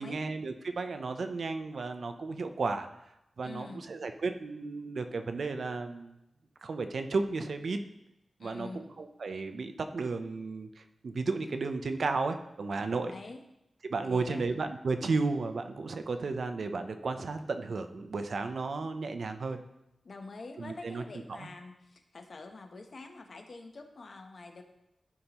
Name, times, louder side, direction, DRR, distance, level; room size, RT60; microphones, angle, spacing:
voice 1, 0.0-2.9 3.4-6.2 6.6-7.8 8.4-13.1 13.8-19.6 20.6-21.0 21.4-21.5, right 3 dB, 60° right, 8 dB, 0.6 m, -33 dB
voice 2, 3.4-3.8 8.4-8.9 12.9-13.4 14.1-14.4 20.0-24.6, left 3 dB, 50° left, 5 dB, 0.9 m, -46 dB
13.0 x 5.5 x 3.0 m, 0.87 s
wide cardioid pair, 130°, 0 cm